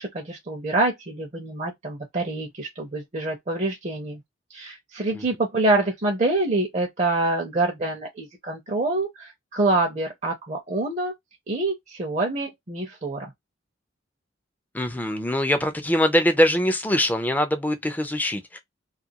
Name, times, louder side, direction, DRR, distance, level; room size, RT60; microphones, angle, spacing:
voice 1, 0.0-4.2 4.5-11.1 11.5-13.3, right 2 dB, 35° right, 0.6 m, -26 dB
voice 2, 14.7-18.6, equal, 10° left, 0.5 m, -22 dB
2.4 x 2.3 x 2.7 m
head